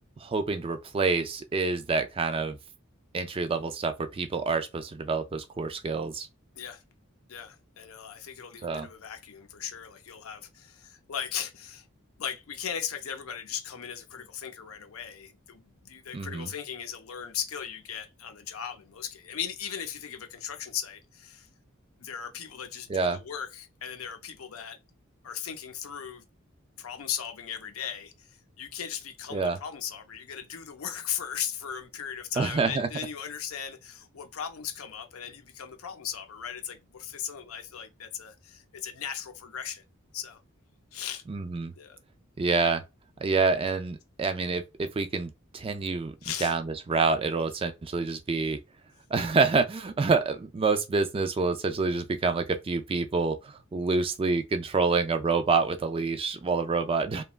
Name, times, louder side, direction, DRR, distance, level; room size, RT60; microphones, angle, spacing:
voice 1, 0.0-2.6 3.1-6.3 8.6-8.9 16.1-16.5 22.9-23.2 29.3-29.6 32.4-32.9 41.3-41.7 42.4-42.8 43.2-46.1 46.4-48.6 49.1-57.2, right 4 dB, 25° right, 0.4 m, -27 dB
voice 2, 7.3-11.9 12.2-21.5 22.0-24.8 25.2-26.3 26.8-39.8 40.1-40.4 40.9-41.2 41.8-42.0 46.2-46.5, left 8 dB, 85° left, 0.6 m, -37 dB
2.9 x 2.3 x 2.3 m
head